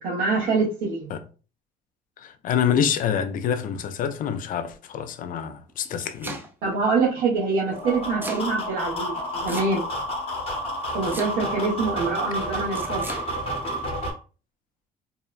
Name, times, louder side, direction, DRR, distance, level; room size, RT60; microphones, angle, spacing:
voice 1, 0.0-1.1 6.6-9.1 9.4-9.8 10.9-13.1, right 4 dB, 85° right, 0.9 m, -25 dB
voice 2, 2.2-6.4, left 8 dB, 55° left, 0.4 m, -26 dB
Domestic sounds home sounds, 5.7-6.7 7.8-8.5 9.5-10.1 11.0-11.7 12.7-13.3, right 2 dB, 10° right, 0.5 m, -37 dB
sound 1, 7.7-14.1, equal, 35° left, 0.9 m, -30 dB
2.7 x 2.1 x 2.3 m
cardioid pair, 110°, 17 cm